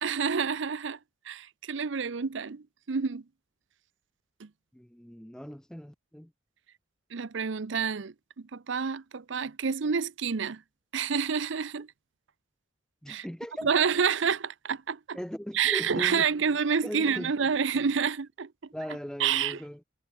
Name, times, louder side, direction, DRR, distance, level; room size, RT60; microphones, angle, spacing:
voice 1, 0.0-1.0 1.2-3.2 4.4-4.5 7.1-10.6 10.9-11.9 13.1-13.3 13.6-15.2 15.5-18.5 19.2-19.6, right 6 dB, 70° right, 0.6 m, -28 dB
voice 2, 4.7-6.3 13.0-13.7 15.1-16.3 16.8-17.3 18.7-19.8, equal, 5° left, 0.6 m, -38 dB
head